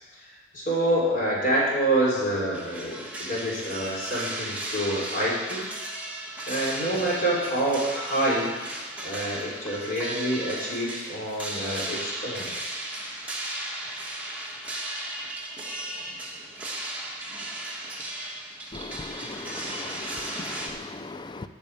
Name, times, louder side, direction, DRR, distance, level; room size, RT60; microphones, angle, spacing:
voice 1, 0.5-5.6 6.5-8.5 9.0-12.5, right 1 dB, 45° left, -5 dB, 3.9 m, -27 dB
sound 1, 2.5-20.7, right 1 dB, 10° right, 1.5 m, -35 dB
voice 2, 18.7-21.5, left 3 dB, 25° left, 10 dB, 0.5 m, -38 dB
8.8 x 6.6 x 8.4 m, 1.2 s
head